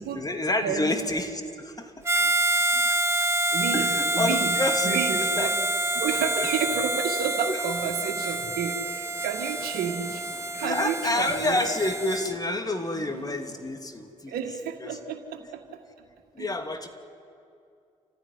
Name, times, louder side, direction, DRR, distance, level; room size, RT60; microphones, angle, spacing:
voice 1, 0.0-2.2 3.7-5.5 6.4-6.5 7.5-7.6 10.6-14.4 14.8-15.0 16.3-16.9, left 2 dB, 25° left, 5 dB, 2.8 m, -29 dB
voice 2, 0.6-1.0 2.7-3.2 3.5-4.5 4.8-5.5 6.0-10.2 10.5-11.6 12.9-13.3 14.3-15.8 16.4-16.5, right 7 dB, 75° right, 5 dB, 2.0 m, -31 dB
Harmonica, 2.0-12.3, right 1 dB, 15° right, 1.7 m, -27 dB
Train, 8.9-13.9, left 1 dB, 40° left, 7.8 m, -51 dB
28.0 x 15.5 x 9.6 m, 2.5 s
hypercardioid pair, 40°, 16 cm